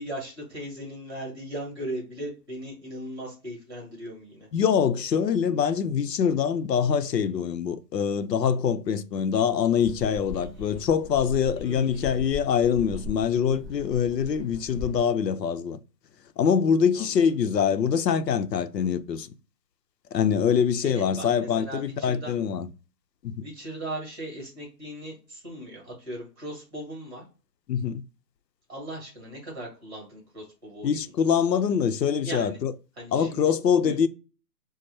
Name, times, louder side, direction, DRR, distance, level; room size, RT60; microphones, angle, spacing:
voice 1, 0.0-4.5 10.3-10.9 11.6-12.1 16.9-17.1 20.8-22.3 23.4-27.2 28.7-31.0 32.2-32.6 33.0-33.5 33.8-33.9, right 1 dB, 15° right, 1.0 m, -38 dB
voice 2, 4.5-15.8 16.4-19.3 20.1-22.7 23.2-23.4 27.7-28.0 30.8-32.7 33.1-34.1, left 7 dB, 80° left, 0.7 m, -24 dB
sound 1, 9.8-15.0, left 4 dB, 15° left, 1.0 m, -39 dB
4.7 x 2.1 x 2.6 m
hypercardioid pair, 175°, 49 cm